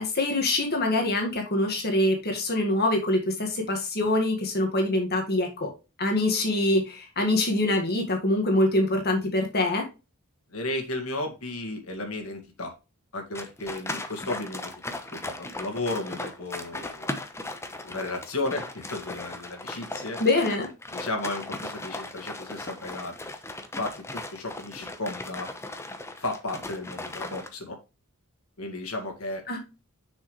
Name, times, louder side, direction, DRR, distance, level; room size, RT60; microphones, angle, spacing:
voice 1, 0.0-5.7 6.0-9.8 20.2-20.7 29.5-29.6, left 1 dB, 50° left, 2 dB, 1.8 m, -24 dB
voice 2, 10.5-12.7 13.1-14.7 15.1-17.1 17.8-20.2 20.9-23.3 23.8-25.5 26.2-27.8 28.6-29.4, left 2 dB, 75° left, 3 dB, 2.0 m, -34 dB
sound 1, 13.3-27.5, left 2 dB, 10° left, 0.9 m, -37 dB
7.0 x 6.2 x 3.2 m, 0.29 s
head